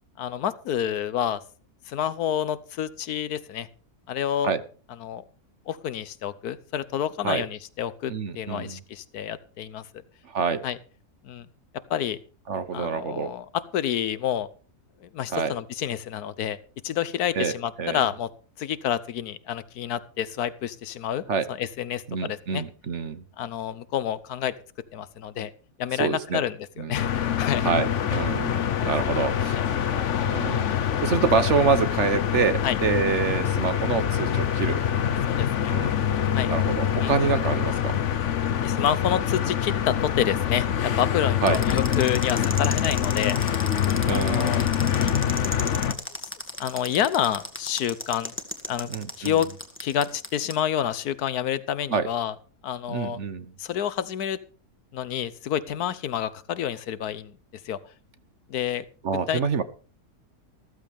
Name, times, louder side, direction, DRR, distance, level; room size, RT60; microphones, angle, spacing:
voice 1, 0.2-1.4 1.9-3.7 4.1-4.5 5.0-5.2 5.7-9.8 10.6-10.8 11.2-11.5 11.9-12.2 12.7-14.5 15.0-16.6 16.8-18.3 18.6-21.2 21.5-22.6 23.4-24.5 24.9-25.5 25.8-27.7 28.8-28.9 29.5-29.6 32.6-32.8 35.3-35.7 36.3-36.5 37.0-37.1 38.6-43.4 44.1-44.6 46.2-46.3 46.6-48.3 48.7-48.9 49.2-49.5 49.8-52.3 52.6-53.2 53.6-54.4 54.9-57.4 57.6-57.8 58.5-58.8 59.3-59.4, left 10 dB, 75° left, 16 dB, 1.3 m, -28 dB
voice 2, 8.1-8.8 10.2-10.6 12.5-13.3 15.3-15.5 17.3-17.5 17.8-18.0 21.3-21.4 22.1-23.2 26.0-26.4 26.8-27.0 27.6-29.6 30.3-30.7 31.0-34.8 35.7-36.0 36.5-38.0 41.4-41.6 44.0-44.6 48.9-49.4 51.9-52.1 52.9-53.5 59.0-59.6, right 5 dB, 50° right, 12 dB, 1.2 m, -26 dB
sound 1, 27.0-45.9, left 9 dB, 55° left, 1.1 m, -25 dB
sound 2, 41.5-50.5, left 1 dB, 10° left, 1.8 m, -34 dB
15.0 x 14.0 x 3.5 m, 0.39 s
omnidirectional pair, 1.7 m